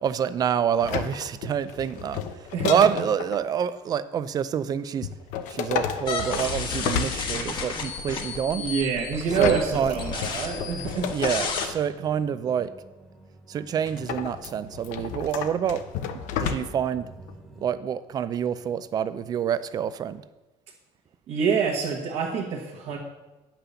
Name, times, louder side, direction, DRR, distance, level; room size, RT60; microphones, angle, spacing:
voice 1, 0.0-2.2 2.7-5.1 5.5-8.6 9.4-10.0 11.1-12.7 13.5-15.8 16.4-17.1 17.6-20.2, right 8 dB, 30° right, 14 dB, 0.4 m, -27 dB
sound 1, 0.8-3.4 5.0-7.8 9.2-11.8 13.9-16.9 17.3-17.4, left 8 dB, 70° left, 0.8 m, -32 dB
voice 2, 2.5-2.8 8.6-11.1 21.3-23.0, right 6 dB, 55° right, -3 dB, 1.3 m, -26 dB
sound 2, 6.0-11.7, left 4 dB, 35° left, 1.1 m, -32 dB
sound 3, 11.2-17.7, right 2 dB, ahead, 1.3 m, -49 dB
10.0 x 5.8 x 6.8 m, 1.1 s
cardioid pair, 175°, 13 cm